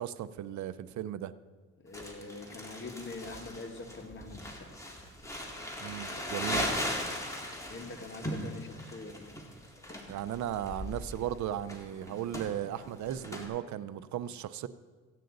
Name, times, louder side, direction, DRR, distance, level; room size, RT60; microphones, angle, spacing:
voice 1, 0.0-1.3 5.8-6.6 10.1-14.7, right 11 dB, 70° right, 15 dB, 0.6 m, -36 dB
voice 2, 1.8-4.7 7.7-9.3, left 3 dB, 40° left, 3 dB, 1.6 m, -44 dB
Crumpling crinkling, 1.9-13.5, left 1 dB, 10° left, 2.1 m, -38 dB
15.5 x 9.2 x 3.9 m, 1.4 s
cardioid pair, 90°, 30 cm